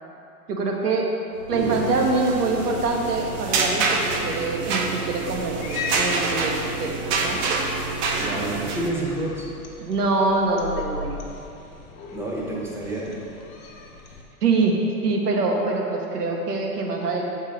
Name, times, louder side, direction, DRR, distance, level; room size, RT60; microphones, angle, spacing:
voice 1, 0.5-1.1 1.5-7.4 8.2-8.5 9.8-11.2 14.4-14.7 15.0-17.2, right 3 dB, 80° right, 0 dB, 1.1 m, -24 dB
sound 1, 1.4-8.9, right 3 dB, 40° right, 0.7 m, -26 dB
Cat, 5.3-14.2, left 3 dB, 60° left, 1.0 m, -38 dB
voice 2, 8.2-9.5 12.1-13.2, right 2 dB, 5° right, -4 dB, 1.0 m, -29 dB
7.1 x 4.5 x 3.3 m, 2.7 s
hypercardioid pair, 105°, 45 cm